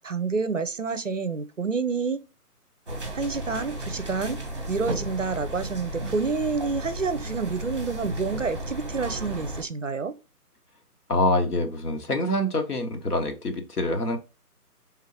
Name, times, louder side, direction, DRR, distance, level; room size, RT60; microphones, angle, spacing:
voice 1, 0.0-2.2 3.1-4.4 4.7-10.1, right 4 dB, 55° right, 0.5 m, -28 dB
sound 1, 2.9-9.6, right 1 dB, 20° right, 0.8 m, -34 dB
voice 2, 11.1-14.2, left 1 dB, 75° left, 1.3 m, -25 dB
4.5 x 3.6 x 2.8 m
figure-of-eight pair, 160°, 47 cm